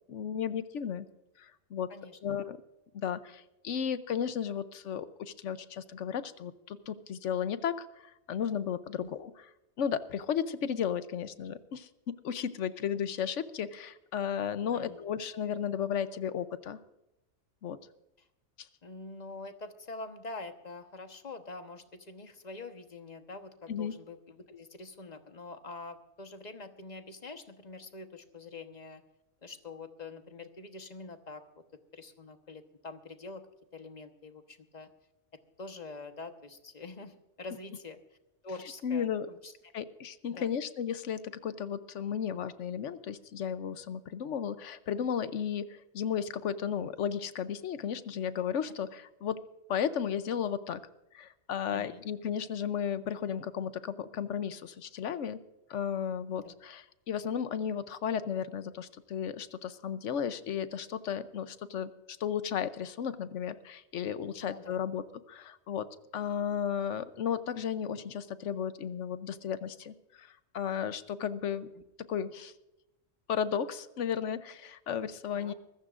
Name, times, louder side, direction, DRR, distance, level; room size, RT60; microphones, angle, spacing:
voice 1, 0.1-1.1 1.4-1.9 2.2-2.6 2.9-9.5 9.8-16.8 17.6-17.8 23.7-24.0 38.8-39.3 39.7-49.4 49.7-50.8 51.1-55.4 55.7-61.9 62.2-65.9 66.1-71.7 72.0-72.5 73.3-75.5, left 8 dB, 80° left, 13 dB, 1.1 m, -34 dB
voice 2, 1.9-2.4 9.0-9.1 14.7-15.0 18.2-18.3 18.8-29.0 29.4-31.4 31.9-33.4 33.7-34.9 35.6-38.0 38.4-39.5 40.3-40.5 51.7-52.0 56.3-56.5 64.4-64.8 75.3-75.5, left 3 dB, 35° left, 7 dB, 1.2 m, -45 dB
24.5 x 14.5 x 2.5 m, 0.94 s
omnidirectional pair, 1.2 m